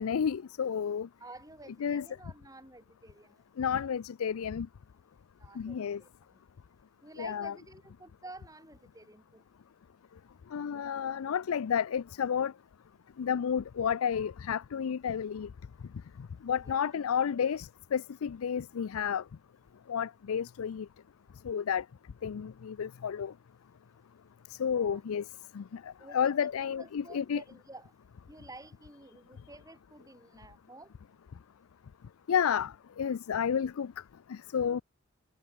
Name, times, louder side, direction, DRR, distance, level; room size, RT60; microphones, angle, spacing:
voice 1, 0.0-1.1 1.8-2.1 3.6-4.7 5.6-6.0 7.2-7.5 10.5-12.5 13.2-15.5 16.4-19.2 19.9-20.9 21.4-21.8 22.2-23.3 24.6-25.2 25.5-27.4 32.3-33.9 34.3-34.8, left 7 dB, 90° left, 0.4 m, -31 dB
voice 2, 1.2-3.4 5.3-6.4 7.0-9.5 16.4-17.0 24.5-25.0 26.0-27.9 28.3-30.9, right 2 dB, 15° right, 6.4 m, -51 dB
head